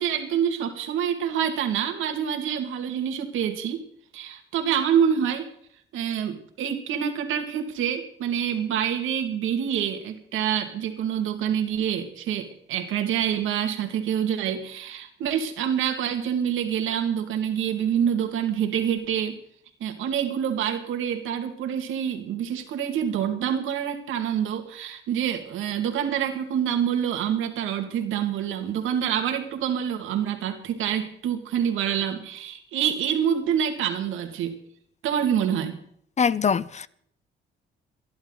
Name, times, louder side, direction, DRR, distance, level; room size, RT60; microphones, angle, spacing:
voice 1, 0.0-3.8 4.1-5.5 5.9-19.4 19.8-34.6 35.0-35.8, right 9 dB, 85° right, 2.3 m, -26 dB
voice 2, 36.2-36.9, left 6 dB, 35° left, 0.6 m, -23 dB
29.0 x 11.5 x 4.0 m
cardioid pair, 90°, 20 cm